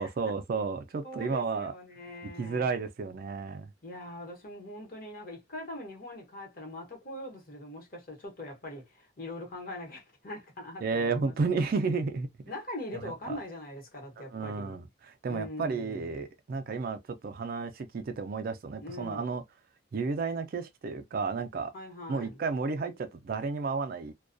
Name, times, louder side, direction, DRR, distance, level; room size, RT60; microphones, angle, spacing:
voice 1, 0.0-1.7 2.4-3.7 10.8-12.3 13.3-13.4 14.3-19.4 19.9-21.7 22.1-24.1, right 4 dB, 45° right, 0.3 m, -32 dB
voice 2, 1.0-2.7 3.8-11.5 12.5-14.7 15.3-16.1 18.8-19.3 21.7-22.4, left 1 dB, 45° left, 1.0 m, -42 dB
2.2 x 2.2 x 2.5 m
head